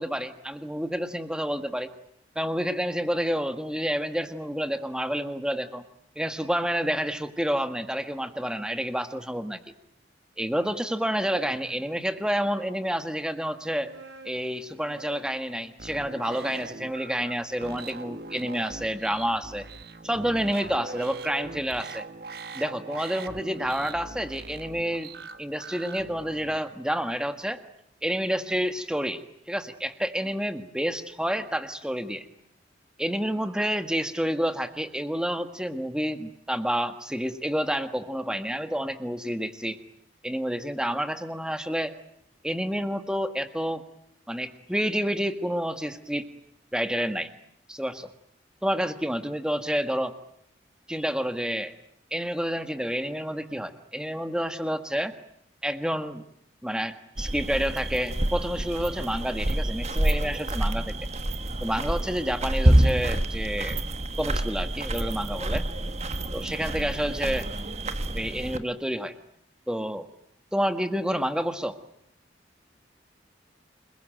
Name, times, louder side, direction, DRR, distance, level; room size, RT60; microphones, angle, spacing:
voice 1, 0.0-1.9 2.3-5.8 6.1-9.6 10.4-13.9 14.2-19.7 20.0-22.1 22.5-25.1 25.4-27.6 28.0-29.2 29.5-32.3 33.0-39.8 40.2-41.9 42.4-43.8 44.3-46.3 46.7-47.3 47.7-48.1 48.6-50.1 50.9-51.7 52.1-55.1 55.6-56.2 56.6-61.0 61.6-63.8 64.2-65.6 66.3-67.5 68.1-69.1 69.7-70.1 70.5-71.8, equal, 5° right, 9 dB, 1.6 m, -29 dB
sound 1, 10.7-12.6 13.4-17.6, right 3 dB, 75° right, 6.5 m, -49 dB
sound 2, 15.8-26.6, right 3 dB, 55° right, 1.5 m, -41 dB
sound 3, 57.2-68.6, right 1 dB, 35° right, 1.5 m, -27 dB
28.5 x 21.5 x 9.1 m, 0.73 s
head